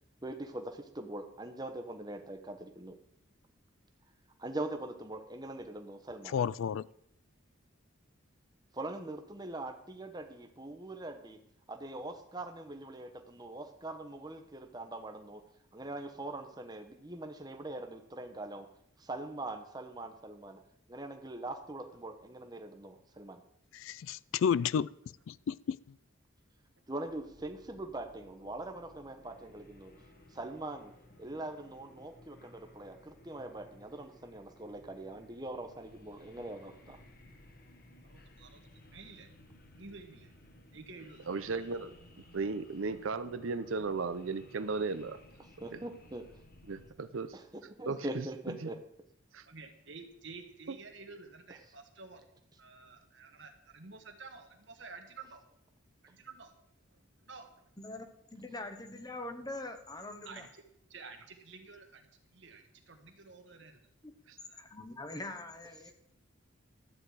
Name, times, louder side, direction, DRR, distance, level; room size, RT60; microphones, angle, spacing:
voice 1, 0.2-3.0 4.4-6.4 8.7-11.4 11.7-15.4 15.7-18.7 19.0-20.6 20.9-23.4 26.9-29.9 30.3-30.9 31.2-37.0 45.6-46.3 47.3-48.8, right 2 dB, 20° right, 0.9 m, -42 dB
voice 2, 6.3-6.8 23.8-24.9 25.3-25.8, left 7 dB, 70° left, 0.3 m, -31 dB
sound 1, 27.0-46.9, left 1 dB, 45° left, 1.4 m, -58 dB
voice 3, 38.1-39.3 39.8-40.3 40.7-41.7 49.5-52.2 52.6-55.4 56.0-56.5 57.2-57.5 60.2-60.5 60.9-62.1 62.3-63.8 64.4-64.6, right 4 dB, 60° right, 1.5 m, -51 dB
voice 4, 41.3-41.9 42.3-45.2 45.7-45.8 46.7-47.3 47.9-48.3 50.7-50.8, right 4 dB, 75° right, 0.6 m, -35 dB
voice 5, 57.8-60.5 64.0-64.1 64.5-65.9, left 2 dB, 20° left, 0.9 m, -43 dB
12.5 x 8.7 x 4.8 m
head